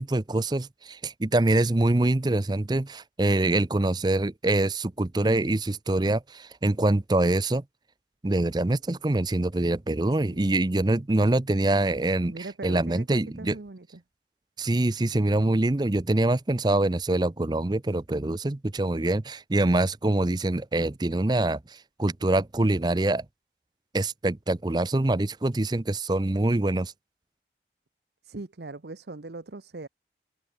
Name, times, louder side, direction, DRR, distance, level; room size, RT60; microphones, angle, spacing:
voice 1, 0.0-7.6 8.2-12.3 12.6-13.5 14.6-21.6 22.0-23.2 23.9-26.9, right 2 dB, 25° right, 0.6 m, -24 dB
voice 2, 12.3-14.0 28.3-29.9, right 2 dB, 70° right, 0.9 m, -40 dB
head